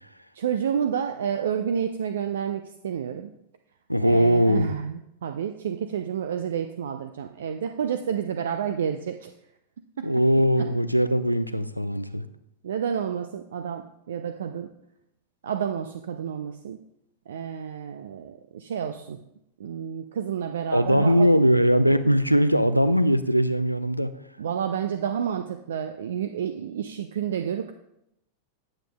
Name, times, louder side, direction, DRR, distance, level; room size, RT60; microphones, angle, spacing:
voice 1, 0.3-3.3 4.0-9.3 10.0-10.1 12.6-14.7 15.4-16.8 17.3-19.2 19.6-21.3 24.4-27.7, right 8 dB, 65° right, 7 dB, 0.3 m, -30 dB
voice 2, 3.9-4.7 10.0-12.2 20.7-24.1, equal, 90° left, 12 dB, 0.3 m, -20 dB
8.8 x 7.5 x 2.3 m, 0.80 s
figure-of-eight pair, 90°, 0 cm